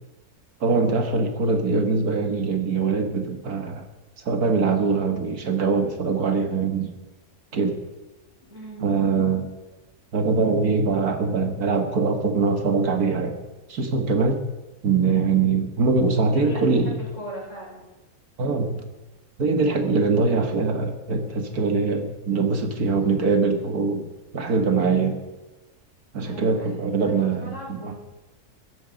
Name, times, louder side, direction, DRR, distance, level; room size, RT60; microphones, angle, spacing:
voice 1, 0.6-3.9 4.3-6.9 7.5-7.8 8.8-9.5 10.1-13.4 13.7-14.4 14.8-17.0 18.4-18.9 19.4-24.1 24.3-25.1 26.1-27.9, right 4 dB, 75° right, 6 dB, 2.1 m, -22 dB
voice 2, 8.5-9.3 16.3-17.9 24.7-25.1 26.2-27.9, right 1 dB, 50° left, -3 dB, 6.1 m, -39 dB
16.5 x 13.5 x 5.3 m, 1.1 s
omnidirectional pair, 1.6 m